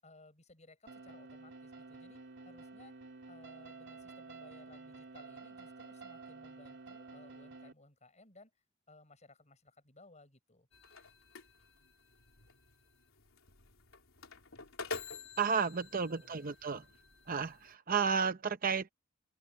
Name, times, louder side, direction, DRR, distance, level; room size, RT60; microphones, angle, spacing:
voice 1, 0.0-3.0 3.3-8.5 8.9-10.7 15.8-16.5, left 2 dB, 35° left, 7.4 m, -60 dB
sound 1, 0.9-7.7, right 3 dB, 60° right, 2.4 m, -51 dB
sound 2, 10.7-17.7, left 4 dB, 90° left, 3.7 m, -48 dB
voice 2, 15.4-16.8 17.3-18.9, right 6 dB, 45° right, 0.8 m, -32 dB
head